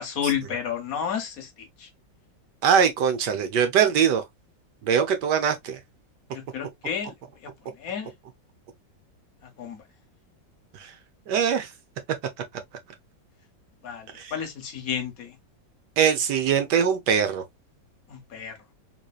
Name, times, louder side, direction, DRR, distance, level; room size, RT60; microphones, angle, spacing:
voice 1, 0.0-1.5 6.3-7.1 7.8-8.1 9.6-9.8 13.8-15.3 18.1-18.5, left 8 dB, 55° left, 1.2 m, -31 dB
voice 2, 2.6-4.2 4.8-5.8 10.8-10.9 11.3-11.7 14.1-14.4 16.0-17.4, right 7 dB, 70° right, 1.3 m, -22 dB
4.0 x 3.2 x 2.3 m
omnidirectional pair, 2.0 m